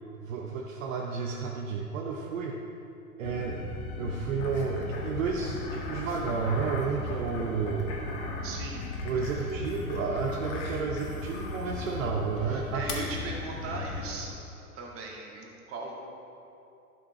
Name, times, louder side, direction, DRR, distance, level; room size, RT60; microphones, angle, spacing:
voice 1, 0.2-2.6 3.2-3.6 4.0-8.0 9.0-12.9, right 5 dB, 60° right, 1 dB, 0.9 m, -31 dB
sound 1, 3.2-14.1, left 3 dB, 70° left, 1.7 m, -37 dB
sound 2, 4.4-12.1 12.9-13.0, left 4 dB, 50° left, 1.8 m, -43 dB
voice 2, 8.4-8.8 12.5-16.0, right 3 dB, 30° right, -2 dB, 2.0 m, -38 dB
12.0 x 6.1 x 4.2 m, 2.7 s
figure-of-eight pair, 105°, 45 cm